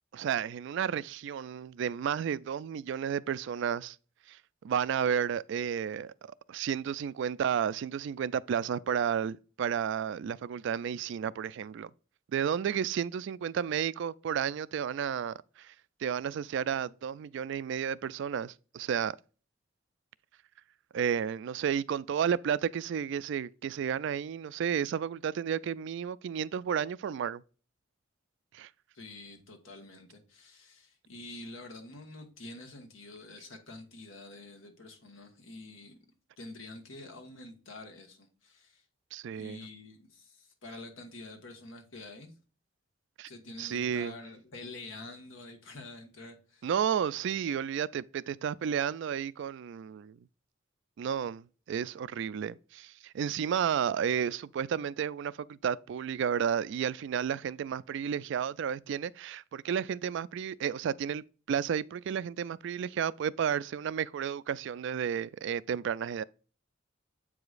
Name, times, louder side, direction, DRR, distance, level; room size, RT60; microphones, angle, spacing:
voice 1, 0.1-4.0 4.3-4.4 4.6-11.9 12.3-15.7 16.0-19.2 20.9-27.4 28.5-28.7 39.1-39.6 43.2-43.3 43.6-44.1 46.6-50.2 51.0-66.2, right 8 dB, 65° right, 0.3 m, -32 dB
voice 2, 28.9-36.0 36.4-38.8 39.4-42.3 43.3-46.7, left 2 dB, 85° left, 1.5 m, -47 dB
8.0 x 4.9 x 2.4 m
head